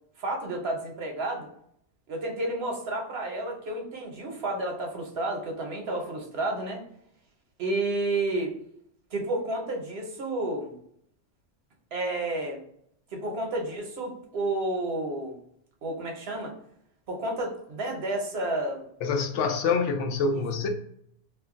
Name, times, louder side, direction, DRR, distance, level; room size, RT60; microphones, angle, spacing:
voice 1, 0.2-1.5 2.1-6.8 7.6-8.6 9.1-10.7 11.9-12.6 13.1-15.4 15.8-16.5 17.1-18.8 20.3-20.4, right 2 dB, 60° right, 1.0 m, -31 dB
voice 2, 19.0-20.7, left 4 dB, 80° left, 0.9 m, -26 dB
2.5 x 2.1 x 3.6 m
omnidirectional pair, 1.2 m